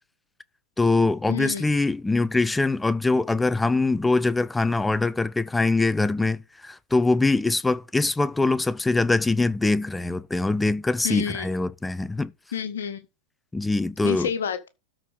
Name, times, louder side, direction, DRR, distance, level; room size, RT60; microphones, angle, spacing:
voice 1, 0.8-12.3 13.5-14.3, left 3 dB, 10° left, 0.5 m, -23 dB
voice 2, 1.3-1.6 11.0-11.4 12.5-13.0 14.0-14.7, left 7 dB, 65° left, 1.6 m, -29 dB
13.0 x 4.7 x 6.6 m
figure-of-eight pair, 90°, 0 cm